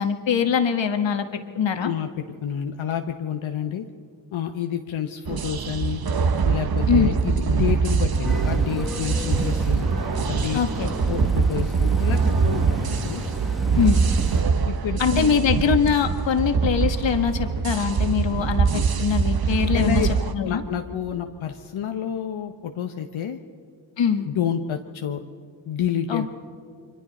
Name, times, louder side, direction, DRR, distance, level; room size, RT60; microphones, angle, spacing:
voice 1, 0.0-1.9 6.9-7.1 10.5-10.9 13.7-14.0 15.0-20.6 24.0-24.3 26.1-26.2, left 7 dB, 70° left, 6 dB, 1.6 m, -23 dB
voice 2, 2.4-3.9 4.3-6.0 6.4-9.9 10.3-13.3 14.7-15.3 19.7-20.1 20.4-23.4 24.2-25.2 25.7-26.3, left 9 dB, 85° left, 5 dB, 1.0 m, -29 dB
sound 1, 5.3-20.3, right 5 dB, 50° right, 1.1 m, -23 dB
sound 2, 8.3-14.4, equal, ahead, 1.7 m, -34 dB
30.0 x 23.5 x 4.2 m, 2.3 s
cardioid pair, 70°, 46 cm